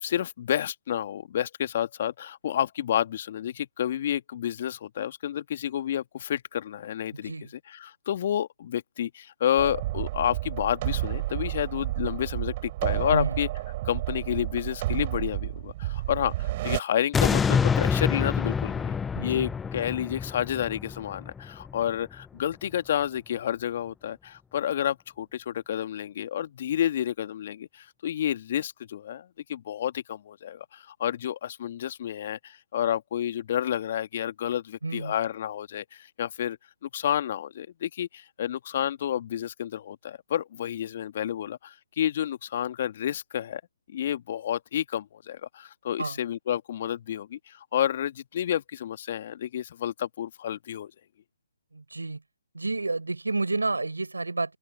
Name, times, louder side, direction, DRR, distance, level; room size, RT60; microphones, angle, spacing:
voice 1, 0.0-7.3 7.8-13.5 13.8-36.6 36.9-43.6 43.9-50.9, left 10 dB, 45° left, 1.7 m, -30 dB
voice 2, 7.1-7.5 13.1-13.4 19.1-19.5 34.8-35.1 46.0-46.2 51.7-52.2 52.5-54.6, right 3 dB, 80° right, 4.6 m, -30 dB
sound 1, 9.6-16.8, right 16 dB, 35° right, 3.5 m, -31 dB
sound 2, 17.1-22.2 22.7-22.8, left 6 dB, 10° left, 0.4 m, -27 dB
open air
figure-of-eight pair, 140°, 0 cm